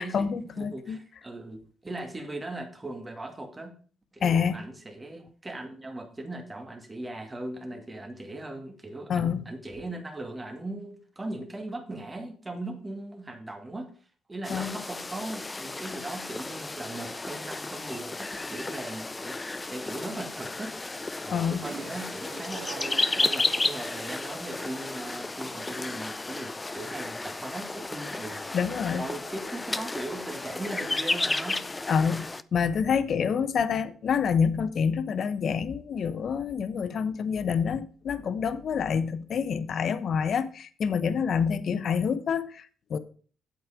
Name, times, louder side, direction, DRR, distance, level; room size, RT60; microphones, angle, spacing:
voice 1, 0.0-1.0 4.2-4.6 9.1-9.4 14.5-14.8 21.3-21.6 28.5-29.0 31.9-43.0, left 6 dB, 55° left, 0.9 m, -27 dB
voice 2, 0.6-3.7 4.1-13.9 14.3-20.8 21.2-28.4 29.0-31.6, right 2 dB, 20° right, 2.3 m, -39 dB
sound 1, 14.4-32.4, left 2 dB, 20° left, 0.5 m, -33 dB
Toilet flush, 21.6-31.0, right 5 dB, 70° right, 2.2 m, -47 dB
8.6 x 7.8 x 5.1 m
cardioid pair, 90°, 0 cm